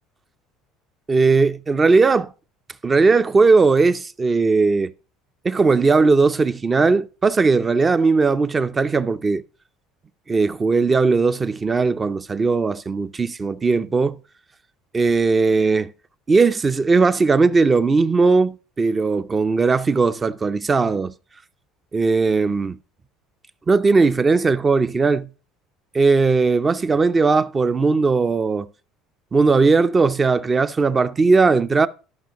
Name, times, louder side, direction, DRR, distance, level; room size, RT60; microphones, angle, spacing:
voice 1, 1.1-2.3 2.8-4.9 5.4-9.4 10.3-14.2 14.9-15.9 16.3-21.1 21.9-22.8 23.7-25.3 25.9-28.7 29.3-31.9, right 4 dB, 25° right, 0.4 m, -18 dB
12.5 x 5.6 x 2.9 m
supercardioid pair, 95°, 0 cm